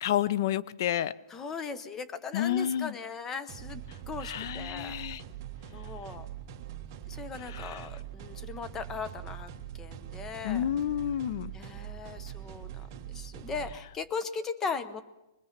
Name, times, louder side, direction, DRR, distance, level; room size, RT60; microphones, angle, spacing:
voice 1, 0.0-1.1 2.3-2.9 4.2-5.2 7.5-7.9 10.4-11.5, left 11 dB, 50° left, 19 dB, 0.7 m, -30 dB
voice 2, 1.3-5.0 5.7-6.3 7.1-9.5 9.8-10.6 11.5-12.9 13.1-15.0, left 5 dB, 15° left, 13 dB, 0.9 m, -38 dB
sound 1, 3.5-13.8, right 11 dB, 35° right, 1.7 m, -43 dB
24.0 x 20.5 x 5.9 m, 0.98 s
hypercardioid pair, 165°, 2 cm